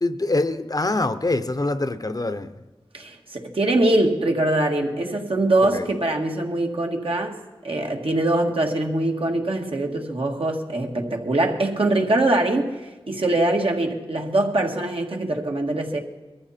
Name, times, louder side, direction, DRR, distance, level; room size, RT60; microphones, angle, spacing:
voice 1, 0.0-2.5 5.6-5.9, left 2 dB, 40° left, 0.7 m, -24 dB
voice 2, 2.9-7.4 7.6-16.0, right 2 dB, 70° right, 1.9 m, -23 dB
21.5 x 14.0 x 4.4 m
wide cardioid pair, 65°, 10 cm